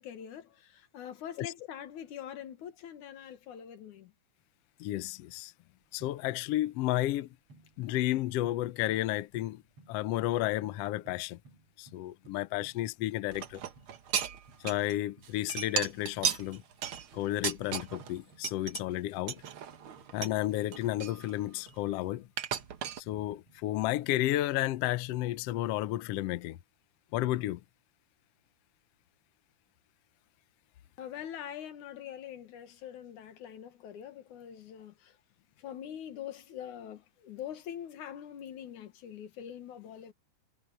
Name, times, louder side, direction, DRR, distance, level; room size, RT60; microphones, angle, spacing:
voice 1, 0.0-4.1 31.0-35.1 35.6-40.1, left 10 dB, 70° left, 2.9 m, -44 dB
voice 2, 4.8-5.5 5.9-7.3 7.8-9.6 9.9-11.4 11.8-13.6 14.6-16.6 17.1-19.4 20.1-22.3 23.1-26.6 27.1-27.6, left 15 dB, 85° left, 1.4 m, -32 dB
sound 1, 5.8-23.8, right 2 dB, 45° right, 9.0 m, -62 dB
sound 2, 13.3-15.0 15.2-18.1 18.4-18.8 19.3-20.4 20.7-21.9 22.4-23.0, right 8 dB, 60° right, 1.5 m, -35 dB
omnidirectional pair, 3.7 m